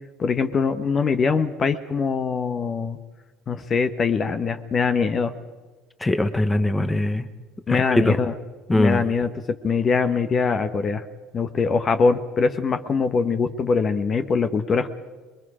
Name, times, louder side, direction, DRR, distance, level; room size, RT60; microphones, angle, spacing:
voice 1, 0.2-3.0 3.5-5.3 7.7-8.3 8.7-9.3 9.6-11.0 11.3-14.9, left 5 dB, 35° left, 9 dB, 1.2 m, -22 dB
voice 2, 6.0-7.3 7.7-8.2 8.7-9.0, left 1 dB, 15° left, 9 dB, 1.2 m, -21 dB
27.0 x 21.5 x 5.1 m, 1.3 s
supercardioid pair, 100°, 0 cm